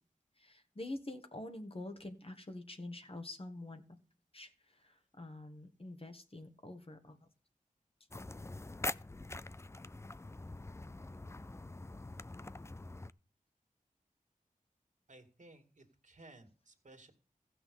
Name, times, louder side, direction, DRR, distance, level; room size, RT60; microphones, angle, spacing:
voice 1, 0.4-3.8 4.3-7.2, left 2 dB, 40° left, 6 dB, 1.6 m, -46 dB
sound 1, 8.1-13.1, left 2 dB, 20° left, 0.4 m, -44 dB
voice 2, 15.1-17.1, right 2 dB, 60° right, 4 dB, 2.3 m, -58 dB
15.5 x 6.0 x 5.4 m, 0.40 s
wide cardioid pair, 55°, 14 cm